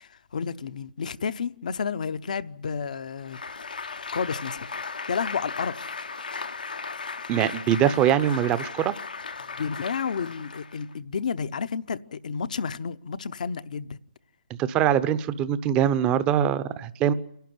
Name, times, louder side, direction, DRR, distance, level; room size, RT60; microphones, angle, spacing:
voice 1, 0.0-3.4 4.1-4.7 5.1-5.9 9.4-14.0, left 6 dB, 65° left, 0.8 m, -31 dB
Applause, 3.2-10.9, left 4 dB, 85° left, 1.1 m, -36 dB
voice 2, 7.3-9.0 14.6-17.1, right 10 dB, 20° right, 0.7 m, -23 dB
28.0 x 11.5 x 9.4 m
hypercardioid pair, 145°, 5 cm